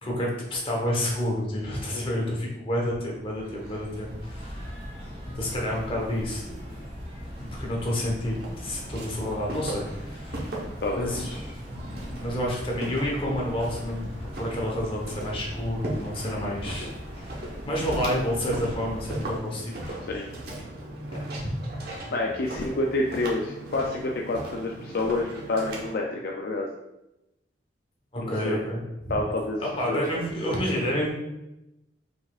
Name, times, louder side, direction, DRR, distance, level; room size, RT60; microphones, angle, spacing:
voice 1, 0.0-4.7 5.3-6.4 7.4-10.5 10.9-20.2 21.1-21.2 28.1-29.2 29.6-31.1, equal, 30° left, -2 dB, 1.2 m, -30 dB
sound 1, 3.1-19.4, equal, 30° right, 1.4 m, -39 dB
Walk footsteps, 8.2-25.9, right 1 dB, 60° right, 1.1 m, -38 dB
voice 2, 16.2-16.5 16.8-16.9 20.1-20.3 22.1-26.7 28.2-28.6 29.1-29.6 29.9-30.2, left 2 dB, 55° left, 0 dB, 0.5 m, -29 dB
5.2 x 4.1 x 2.4 m, 0.93 s
head